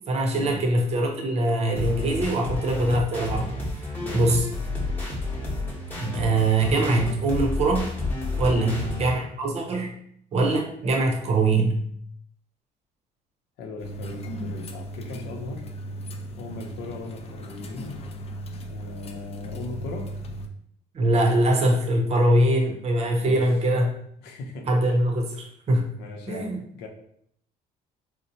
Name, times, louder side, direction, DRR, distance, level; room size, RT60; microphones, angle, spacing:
voice 1, 0.1-3.5 4.1-4.5 6.0-7.9 8.4-9.9 10.3-11.8 20.9-23.9 24.7-25.9 26.3-26.6, right 1 dB, 40° right, 2 dB, 0.6 m, -22 dB
sound 1, 1.8-9.2, left 2 dB, 10° left, 0.9 m, -30 dB
voice 2, 8.5-8.8 13.6-15.7 16.4-18.0 18.7-20.1 23.1-23.5 24.2-25.0 26.0-26.9, left 3 dB, 80° left, 2 dB, 0.7 m, -38 dB
sound 2, 13.8-20.5, right 1 dB, 35° left, 0.4 m, -36 dB
4.2 x 2.0 x 2.7 m, 0.67 s
cardioid pair, 110°, 17 cm